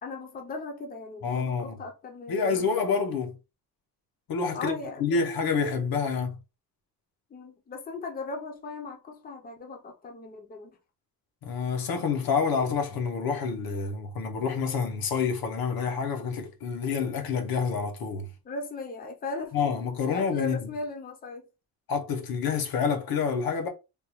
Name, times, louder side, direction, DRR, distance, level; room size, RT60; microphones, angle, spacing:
voice 1, 0.0-2.7 4.5-5.2 7.3-10.8 18.4-19.6 20.0-21.5, left 3 dB, 25° left, 0.6 m, -38 dB
voice 2, 1.2-1.8 2.3-3.3 4.3-6.4 11.4-18.3 19.5-20.6 21.9-23.7, left 5 dB, 75° left, 0.9 m, -28 dB
3.5 x 2.3 x 3.0 m
wide cardioid pair, 160°, 36 cm